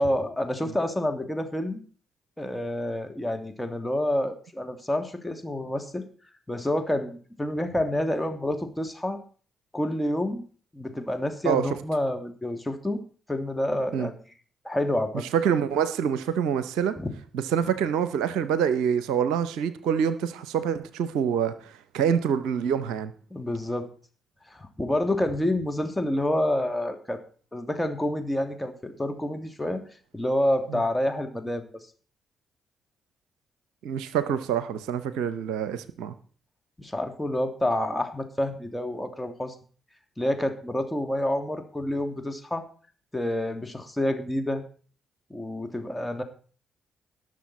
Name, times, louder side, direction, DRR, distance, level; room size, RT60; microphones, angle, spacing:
voice 1, 0.0-1.8 2.4-6.0 6.5-9.2 9.7-10.4 10.7-13.0 13.3-14.1 14.6-15.2 17.0-17.1 23.3-23.9 24.5-27.2 27.5-29.8 30.1-31.6 36.8-39.5 40.2-42.6 43.1-44.6 45.3-46.2, left 1 dB, 10° left, 5 dB, 2.5 m, -28 dB
voice 2, 15.3-16.9 17.3-23.1 30.7-30.8 33.8-36.1, right 8 dB, 75° right, 14 dB, 0.7 m, -26 dB
19.0 x 6.5 x 4.2 m, 0.42 s
hypercardioid pair, 40°, 0 cm